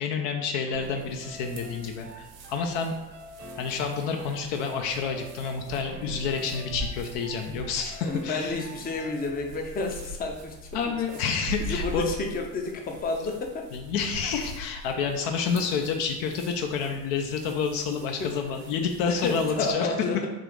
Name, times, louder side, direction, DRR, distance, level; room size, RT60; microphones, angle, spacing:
voice 1, 0.0-2.9 3.6-8.5 10.7-12.1 13.7-19.9, left 5 dB, 60° left, 4 dB, 0.6 m, -29 dB
sound 1, 0.7-9.6, left 1 dB, 70° right, 1.0 m, -46 dB
sound 2, 0.7-19.7, right 1 dB, 90° right, 0.6 m, -43 dB
voice 2, 8.0-10.5 11.1-11.2 11.6-13.6 15.5-15.6 18.2-18.3 19.1-20.3, left 3 dB, 20° left, 3 dB, 0.5 m, -31 dB
3.7 x 2.4 x 3.2 m, 1.1 s
hypercardioid pair, 55°, 49 cm